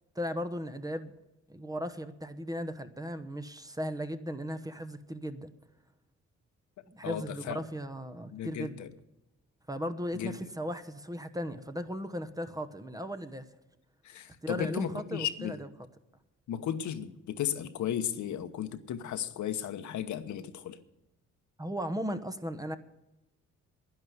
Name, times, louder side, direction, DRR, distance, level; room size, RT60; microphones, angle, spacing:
voice 1, 0.1-1.1 1.5-5.5 6.9-8.8 9.7-13.4 14.4-15.7 21.6-22.8, equal, 10° right, 10 dB, 1.0 m, -36 dB
voice 2, 7.0-7.6 8.3-8.9 10.1-10.4 14.0-15.6 16.5-20.8, left 10 dB, 70° left, 9 dB, 1.1 m, -35 dB
11.0 x 10.5 x 7.9 m, 0.93 s
cardioid pair, 90°, 30 cm